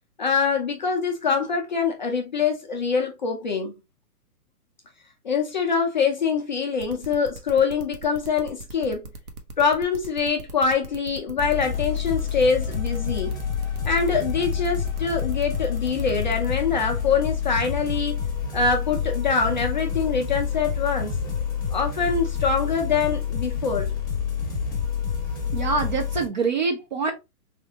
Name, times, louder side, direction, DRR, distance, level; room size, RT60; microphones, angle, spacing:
voice 1, 0.2-3.7 5.2-9.1 9.6-13.4 13.9-18.2 18.5-21.2 21.7-23.9, left 5 dB, 35° left, 0.4 m, -24 dB
sound 1, 6.8-16.5, right 2 dB, 70° right, 1.0 m, -40 dB
sound 2, 11.4-26.3, left 7 dB, 10° left, 0.8 m, -28 dB
voice 2, 25.5-27.1, right 4 dB, 35° right, 0.4 m, -25 dB
3.4 x 2.4 x 2.7 m
hypercardioid pair, 140°, 45 cm